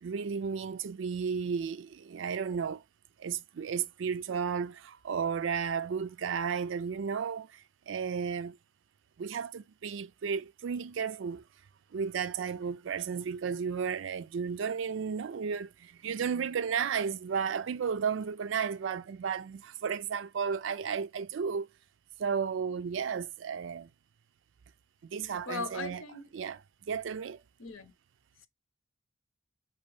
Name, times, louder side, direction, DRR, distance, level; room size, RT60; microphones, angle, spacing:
voice 1, 0.0-2.8 3.2-8.6 9.2-11.4 11.9-21.7 22.2-23.9 25.1-26.0 26.3-27.4, right 6 dB, 65° right, 0.4 m, -33 dB
voice 2, 25.5-26.3 27.6-27.9, left 4 dB, 80° left, 0.8 m, -38 dB
5.3 x 2.9 x 3.1 m
head